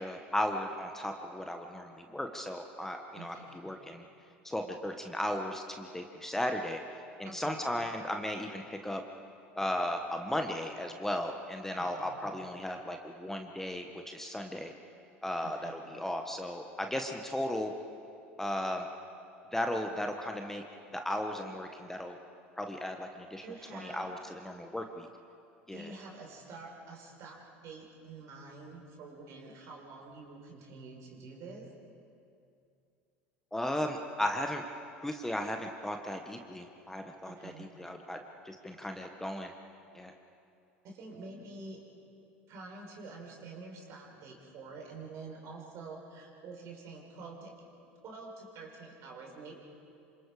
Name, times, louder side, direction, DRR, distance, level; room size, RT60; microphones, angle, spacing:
voice 1, 0.0-4.1 4.4-6.8 7.2-9.0 9.5-14.7 15.2-17.7 18.4-18.9 19.5-20.6 20.9-22.2 22.6-23.4 23.7-25.1 25.7-25.9 33.5-34.6 35.0-38.2 38.4-39.5 39.9-40.1, left 1 dB, 5° left, 4 dB, 1.5 m, -36 dB
voice 2, 3.1-3.6 7.3-7.6 11.8-12.2 15.4-15.7 23.4-24.1 25.7-31.7 37.3-37.9 40.8-41.8 42.5-47.5 48.0-49.5, right 3 dB, 50° right, 0 dB, 5.4 m, -47 dB
27.0 x 26.5 x 5.1 m, 2.5 s
hypercardioid pair, 75°, 6 cm